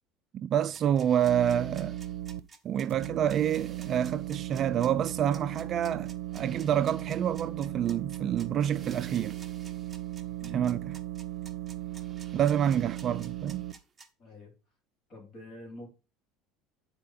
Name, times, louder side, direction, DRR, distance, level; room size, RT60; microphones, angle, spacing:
voice 1, 0.3-2.0 2.6-9.4 10.5-10.9 12.3-13.6, right 9 dB, 35° right, 0.4 m, -28 dB
sound 1, 0.7-14.1, right 4 dB, 15° right, 1.1 m, -53 dB
sound 2, 1.2-2.4 2.9-13.7, right 14 dB, 90° right, 0.6 m, -37 dB
voice 2, 10.2-10.8 14.2-14.5 15.1-15.9, left 1 dB, 35° left, 3.7 m, -47 dB
9.8 x 4.4 x 5.1 m
cardioid pair, 150°, 0 cm